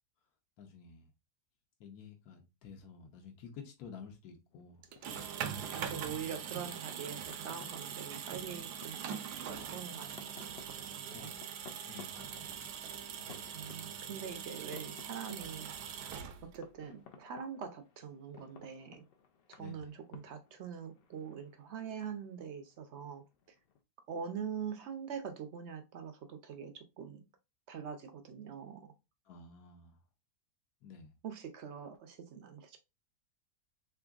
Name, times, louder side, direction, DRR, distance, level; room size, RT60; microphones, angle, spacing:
voice 1, 0.6-1.1 1.8-4.8 6.0-6.2 11.1-11.3 11.9-12.5 19.6-19.9 29.2-30.0 30.8-31.1, left 6 dB, 70° left, 1.2 m, -51 dB
sound 1, 4.5-23.8, left 6 dB, 90° left, 0.5 m, -58 dB
sound 2, 4.8-16.7, right 8 dB, 85° right, 1.2 m, -42 dB
voice 2, 5.7-10.4 10.6-11.3 13.5-15.7 16.4-19.0 19.5-23.2 24.1-27.2 27.7-28.9 31.2-32.8, right 7 dB, 70° right, 0.7 m, -44 dB
3.7 x 3.4 x 2.3 m
omnidirectional pair, 1.7 m